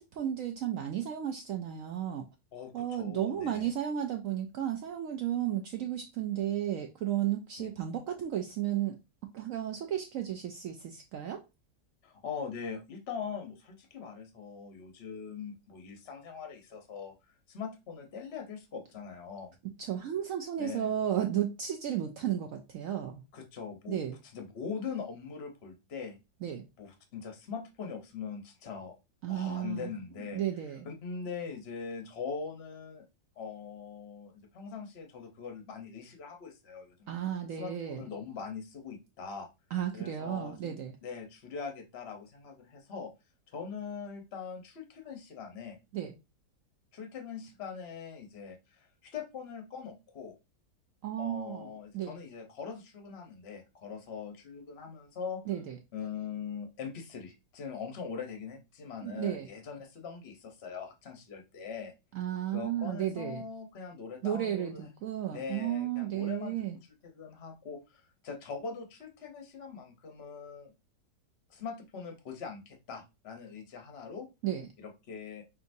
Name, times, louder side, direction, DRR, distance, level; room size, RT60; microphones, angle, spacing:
voice 1, 0.0-2.3 2.7-9.0 9.3-11.4 19.8-23.2 23.9-24.2 26.4-26.7 29.2-29.9 30.3-30.9 37.1-38.1 39.7-41.0 45.9-46.1 51.0-51.7 51.9-52.2 55.5-55.8 59.0-59.5 62.1-63.4 64.2-66.8 74.4-74.7, right 11 dB, 80° right, 0.7 m, -33 dB
voice 2, 2.5-3.7 7.6-7.7 12.0-19.5 20.6-20.9 23.3-26.2 26.8-28.9 29.3-30.4 30.8-33.0 33.4-37.1 37.5-39.5 39.9-40.8 41.0-43.1 43.5-45.8 46.9-50.4 51.2-55.4 55.9-61.9 62.5-64.9 65.3-66.5 67.0-70.7 71.5-74.3 74.8-75.4, left 6 dB, 50° left, 0.8 m, -42 dB
5.7 x 2.7 x 2.6 m
omnidirectional pair, 1.9 m